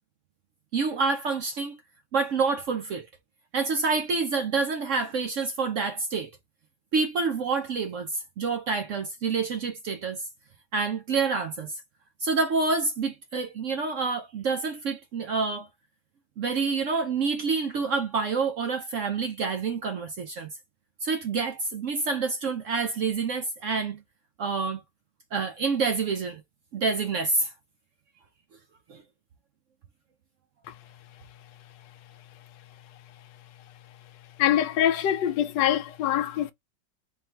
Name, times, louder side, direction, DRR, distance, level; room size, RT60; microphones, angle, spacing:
voice 1, 0.7-1.8 2.1-3.1 3.5-6.3 6.9-10.2 10.7-11.8 12.2-15.7 16.4-20.5 21.0-24.0 24.4-24.8 25.3-26.4 26.7-27.5 28.9-29.0, right 4 dB, 70° right, 0.7 m, -27 dB
voice 2, 34.4-36.5, left 11 dB, 80° left, 1.3 m, -24 dB
3.6 x 2.5 x 4.3 m
omnidirectional pair, 1.9 m